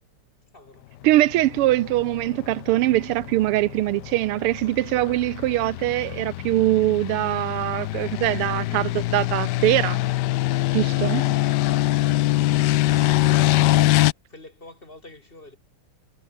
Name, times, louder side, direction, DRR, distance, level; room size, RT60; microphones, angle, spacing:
voice 1, 0.5-0.9 13.8-15.6, left 2 dB, 25° left, 3.0 m, -48 dB
voice 2, 1.0-10.0 10.7-11.2, right 16 dB, 90° right, 1.6 m, -22 dB
sound 1, 1.2-14.1, left 16 dB, 90° left, 0.9 m, -24 dB
omnidirectional pair, 2.4 m